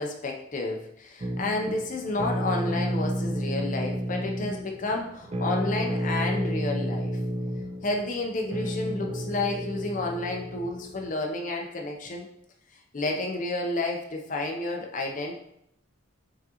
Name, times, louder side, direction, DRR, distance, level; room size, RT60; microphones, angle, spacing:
voice 1, 0.0-7.1 7.8-12.3 12.9-15.4, left 2 dB, 40° left, 1 dB, 0.6 m, -31 dB
sound 1, 1.2-11.1, equal, 30° right, 0.3 m, -31 dB
4.9 x 3.7 x 2.8 m, 0.75 s
head